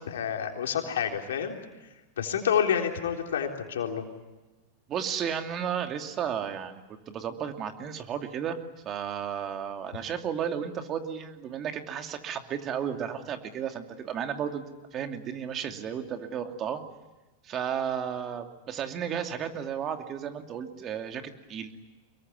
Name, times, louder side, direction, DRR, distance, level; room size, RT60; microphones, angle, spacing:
voice 1, 0.1-1.5 2.2-4.1, left 8 dB, 80° left, 3 dB, 3.7 m, -28 dB
voice 2, 4.9-8.6 8.8-14.6 14.9-16.8 17.4-21.2 21.5-21.7, right 8 dB, 35° right, 5 dB, 2.6 m, -33 dB
25.0 x 22.0 x 9.6 m, 1.1 s
hypercardioid pair, 110°, 0 cm